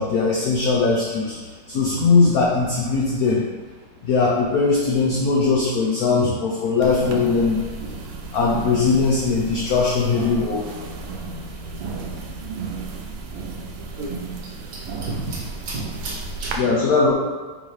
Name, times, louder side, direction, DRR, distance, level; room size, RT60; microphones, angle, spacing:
voice 1, 0.0-3.4 4.0-7.6 8.3-10.7 16.5-17.1, left 4 dB, 90° left, -3 dB, 0.8 m, -20 dB
sound 1, 6.8-16.6, right 4 dB, 80° right, 1.4 m, -33 dB
voice 2, 14.7-16.6, right 2 dB, 65° right, -3 dB, 1.3 m, -32 dB
3.9 x 3.8 x 3.2 m, 1.3 s
omnidirectional pair, 2.3 m